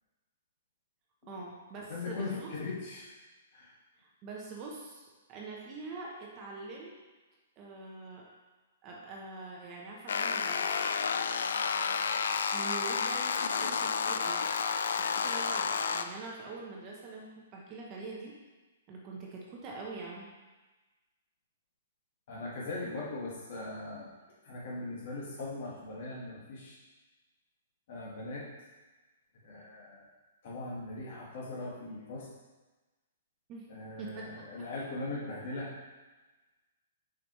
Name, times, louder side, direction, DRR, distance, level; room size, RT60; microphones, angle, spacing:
voice 1, 1.3-2.5 4.0-6.9 7.6-8.2 8.8-10.8 12.5-14.4 14.9-18.3 18.9-20.3 33.5-33.7 34.0-34.5, right 3 dB, 20° right, -2 dB, 0.8 m, -44 dB
voice 2, 1.9-3.1 3.5-3.7 22.3-24.1 24.4-26.8 27.9-28.5 29.4-30.0 30.4-32.3 33.7-35.7, left 2 dB, 45° left, -4 dB, 1.7 m, -39 dB
sound 1, 10.1-16.0, left 6 dB, 75° left, 0.4 m, -31 dB
6.9 x 4.8 x 3.1 m, 1.2 s
hypercardioid pair, 170°, 0 cm